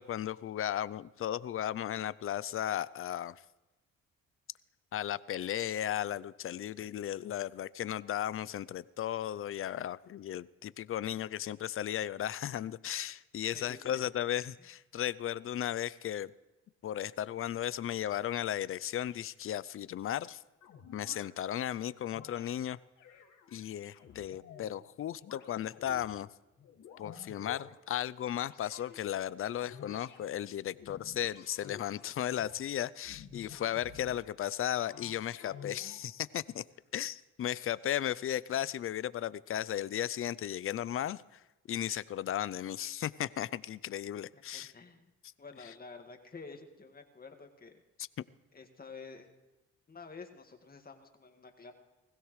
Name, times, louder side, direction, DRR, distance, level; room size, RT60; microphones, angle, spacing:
voice 1, 0.0-3.4 4.9-16.3 16.8-20.4 20.9-22.8 23.5-26.3 27.0-36.6 36.9-41.4 41.7-44.7, left 11 dB, 45° left, 19 dB, 0.5 m, -35 dB
voice 2, 13.5-14.0 14.6-14.7 44.3-45.1 45.4-47.8 48.5-49.3 49.9-51.7, left 4 dB, 30° left, 4 dB, 1.9 m, -50 dB
sound 1, 20.6-21.3 22.0-22.5 23.0-24.8 25.2-26.1 26.6-27.7 28.4-29.0 29.6-30.2 30.7-32.5 33.0-34.3 34.8-36.1, left 7 dB, 85° left, 2.1 m, -51 dB
20.5 x 16.0 x 3.2 m, 1.1 s
cardioid pair, 90°, 30 cm